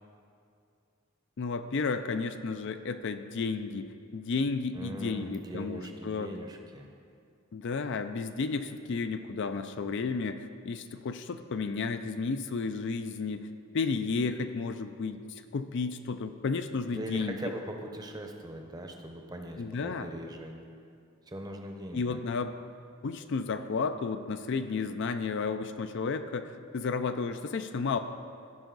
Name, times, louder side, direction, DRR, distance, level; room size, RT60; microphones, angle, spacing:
voice 1, 1.4-6.3 7.5-10.4 10.6-13.5 13.7-15.2 15.5-17.4 19.6-20.1 21.9-22.5 23.0-28.0, left 4 dB, 55° left, 9 dB, 0.4 m, -32 dB
voice 2, 4.7-6.9 16.9-20.5 21.3-22.2, right 1 dB, 20° right, 3 dB, 0.7 m, -40 dB
16.0 x 5.3 x 3.9 m, 2.4 s
head